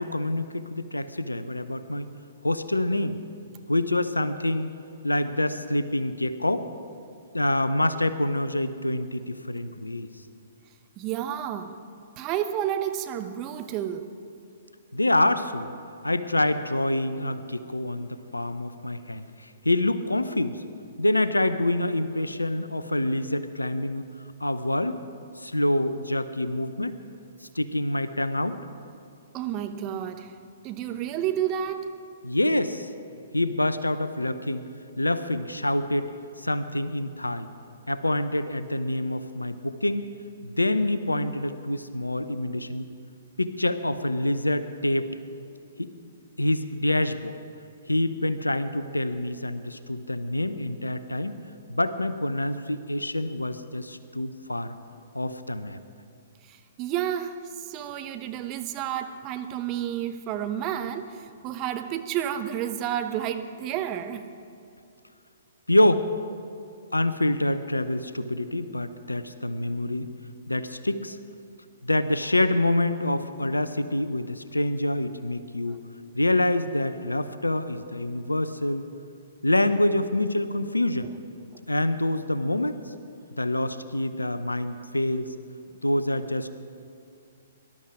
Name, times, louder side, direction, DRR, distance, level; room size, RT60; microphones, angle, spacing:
voice 1, 0.0-2.1 2.4-3.2 3.7-4.7 5.0-6.7 7.3-10.1 14.9-15.7 16.0-20.6 21.0-24.0 24.4-25.0 25.4-27.0 27.5-28.6 32.2-32.9 33.3-34.6 35.0-36.1 36.4-37.5 37.9-40.1 40.4-42.9 43.4-45.1 45.8-45.9 46.4-47.3 47.9-51.4 51.7-54.7 55.1-55.8 65.7-66.1 66.9-70.1 70.5-71.2 71.8-75.8 76.1-78.9 79.4-81.1 81.7-82.8 83.4-85.3 85.8-86.5, left 1 dB, 85° left, 12 dB, 0.7 m, -26 dB
voice 2, 11.0-11.8 12.2-14.1 29.3-30.3 30.6-31.9 56.5-64.3 75.7-75.8, right 10 dB, 30° right, 8 dB, 0.9 m, -30 dB
19.0 x 12.0 x 5.0 m, 2.6 s
figure-of-eight pair, 120°, 0 cm